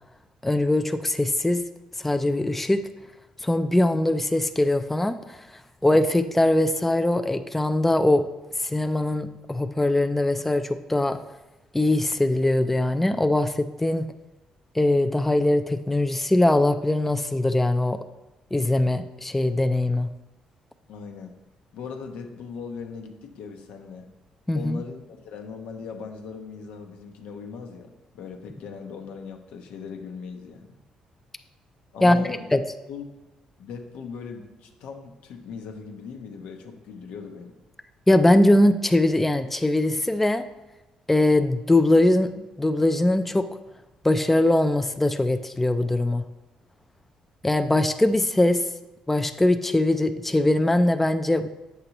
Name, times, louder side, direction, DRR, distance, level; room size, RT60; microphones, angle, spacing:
voice 1, 0.4-1.6 2.0-2.8 3.4-5.5 5.8-8.3 8.6-11.2 11.7-14.1 14.7-18.0 18.5-20.1 24.5-24.8 32.0-32.6 38.1-40.5 41.1-42.3 42.6-43.5 44.0-46.2 47.4-48.7 49.1-51.5, left 1 dB, 10° left, 9 dB, 0.4 m, -21 dB
voice 2, 20.9-21.3 21.7-24.0 24.5-30.7 31.9-32.5 32.9-33.1 33.6-37.5, left 5 dB, 85° left, 4 dB, 0.9 m, -39 dB
8.4 x 6.6 x 3.0 m, 1.0 s
cardioid pair, 100°, 2 cm